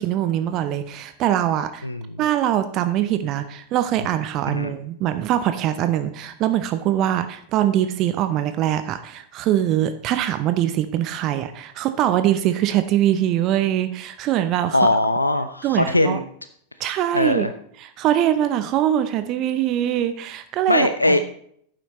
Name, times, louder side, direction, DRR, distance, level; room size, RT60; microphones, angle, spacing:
voice 1, 0.0-1.9 2.2-14.8 15.6-16.2 16.8-17.5 17.8-21.2, right 11 dB, 35° right, 10 dB, 0.6 m, -22 dB
voice 2, 14.7-16.2 17.1-17.5 20.7-21.2, left 1 dB, 85° left, 11 dB, 0.4 m, -20 dB
11.5 x 9.1 x 3.1 m, 0.66 s
figure-of-eight pair, 90°, 0 cm